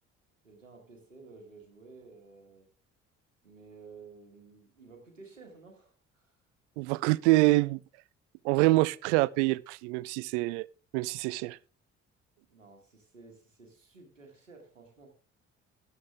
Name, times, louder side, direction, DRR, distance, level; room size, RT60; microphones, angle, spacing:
voice 1, 0.4-2.7 3.4-6.4 12.5-15.1, right 4 dB, 85° right, 1.7 m, -53 dB
voice 2, 6.8-7.8 8.4-10.7 10.9-11.6, right 21 dB, 65° right, 0.5 m, -25 dB
12.5 x 10.5 x 3.4 m
figure-of-eight pair, 45°, 37 cm